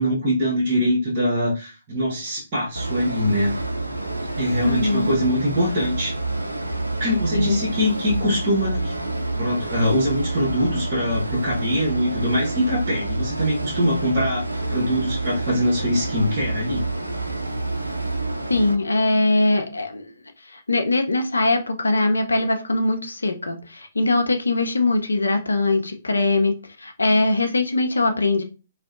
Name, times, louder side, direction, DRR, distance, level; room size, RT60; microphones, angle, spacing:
voice 1, 0.0-3.6 4.4-6.1 7.0-9.0 9.4-16.9, equal, 35° right, -4 dB, 1.0 m, -23 dB
sound 1, 2.8-18.8, right 2 dB, 90° right, 0.3 m, -28 dB
voice 2, 4.6-5.1 7.3-7.6 18.5-20.1 20.5-28.4, left 2 dB, 80° left, 6 dB, 0.5 m, -21 dB
2.6 x 2.1 x 2.4 m, 0.32 s
figure-of-eight pair, 125°, 0 cm